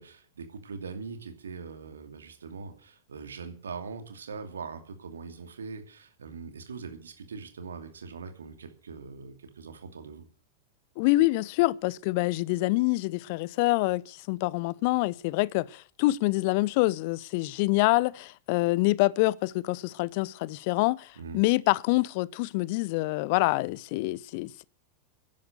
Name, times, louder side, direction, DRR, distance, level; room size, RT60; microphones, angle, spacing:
voice 1, 0.0-10.2 21.2-21.4, right 5 dB, 70° right, 2.6 m, -42 dB
voice 2, 11.0-21.1 21.3-24.6, left 20 dB, 45° left, 0.6 m, -26 dB
11.5 x 10.5 x 8.0 m
figure-of-eight pair, 90°, 0 cm